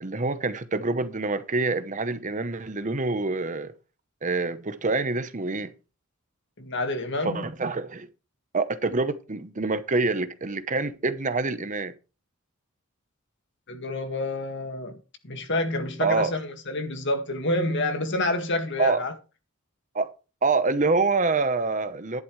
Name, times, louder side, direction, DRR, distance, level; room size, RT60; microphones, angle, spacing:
voice 1, 0.0-3.7 4.2-5.7 7.2-8.1 8.5-11.9 16.0-16.3 18.8-19.0 19.9-20.1 20.4-22.2, right 3 dB, 35° right, 0.9 m, -26 dB
voice 2, 6.6-7.5 13.7-15.0 15.2-19.1, left 2 dB, 55° left, 1.9 m, -28 dB
12.5 x 11.0 x 3.2 m
head